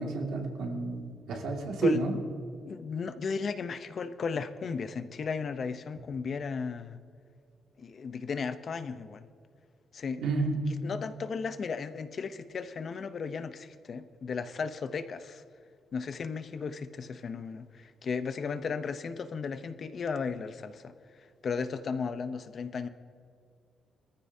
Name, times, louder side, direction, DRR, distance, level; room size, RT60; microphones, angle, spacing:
voice 1, 0.0-2.2 10.2-10.6, right 3 dB, 90° right, 1 dB, 2.2 m, -30 dB
voice 2, 2.6-7.0 7.8-9.3 9.9-10.2 10.8-15.4 15.9-22.9, left 5 dB, 45° left, 10 dB, 0.7 m, -35 dB
22.0 x 14.5 x 2.8 m, 2.3 s
cardioid pair, 130°, 0 cm